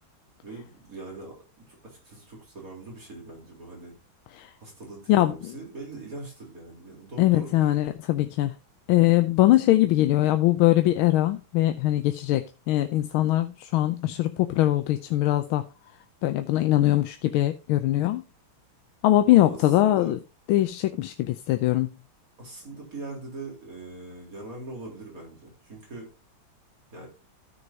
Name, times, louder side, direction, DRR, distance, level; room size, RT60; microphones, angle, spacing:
voice 1, 0.4-1.3 1.7-3.9 4.6-7.7 19.3-20.1 22.4-26.1 26.9-27.1, right 2 dB, 40° right, 4.0 m, -41 dB
voice 2, 7.2-8.5 8.9-15.6 16.2-18.2 19.0-20.2 20.5-21.9, left 15 dB, 85° left, 1.5 m, -22 dB
14.0 x 6.4 x 2.7 m
omnidirectional pair, 2.2 m